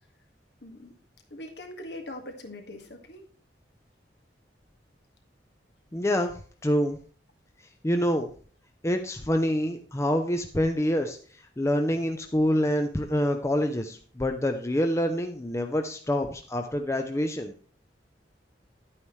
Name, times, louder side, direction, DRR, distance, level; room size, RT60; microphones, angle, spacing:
voice 1, 0.6-0.9 1.3-3.3, left 1 dB, 70° left, 4 dB, 1.8 m, -41 dB
voice 2, 5.9-6.3 6.6-7.0 7.8-8.3 8.8-11.2 11.6-17.5, equal, 15° left, 5 dB, 0.6 m, -26 dB
11.0 x 8.8 x 3.2 m, 0.43 s
head